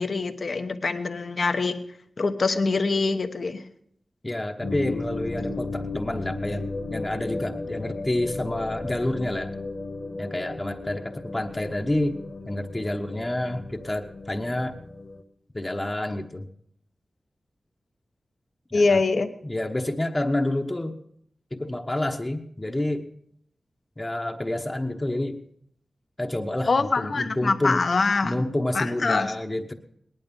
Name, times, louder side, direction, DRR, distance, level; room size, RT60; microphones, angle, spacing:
voice 1, 0.0-1.8 2.2-3.6 18.7-19.3 26.7-28.4 28.7-29.3, left 3 dB, 65° left, 7 dB, 1.1 m, -24 dB
voice 2, 4.2-9.5 10.2-14.7 15.5-16.5 18.7-19.0 19.4-20.9 21.5-23.1 24.0-25.4 26.2-27.8 28.2-29.7, left 1 dB, 25° left, 3 dB, 1.1 m, -28 dB
sound 1, 4.6-15.2, left 3 dB, 45° left, 1.6 m, -35 dB
18.5 x 11.5 x 5.4 m, 0.69 s
cardioid pair, 65°, 0 cm